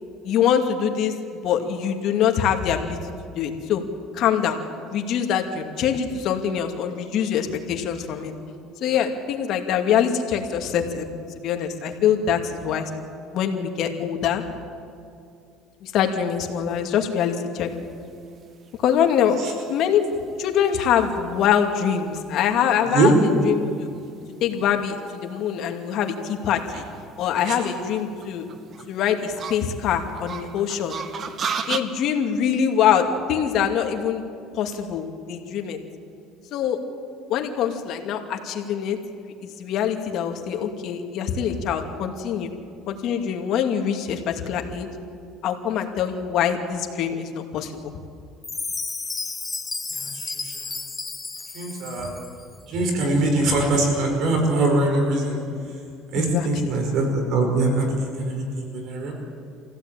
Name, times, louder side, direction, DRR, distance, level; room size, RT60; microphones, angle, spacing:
voice 1, 0.2-1.1 1.4-3.0 3.4-3.8 4.1-4.6 4.9-8.3 8.8-11.1 11.4-12.9 13.3-14.4 15.8-17.7 18.8-20.0 20.4-23.1 23.4-23.9 24.4-26.8 27.2-28.5 28.9-30.9 31.7-34.2 34.6-35.8 36.5-36.8 37.3-39.0 39.4-42.5 42.9-44.9 45.4-47.9 56.1-56.5, left 8 dB, 60° left, 4 dB, 2.5 m, -24 dB
sound 1, 17.9-31.8, right 6 dB, 40° right, 1.3 m, -37 dB
Chime, 48.4-52.4, left 3 dB, 15° left, 0.9 m, -32 dB
voice 2, 49.9-50.6 51.5-52.1 52.7-55.4 56.1-59.1, right 2 dB, 60° right, 2 dB, 4.9 m, -23 dB
24.5 x 16.5 x 9.1 m, 2.4 s
cardioid pair, 125°, 0 cm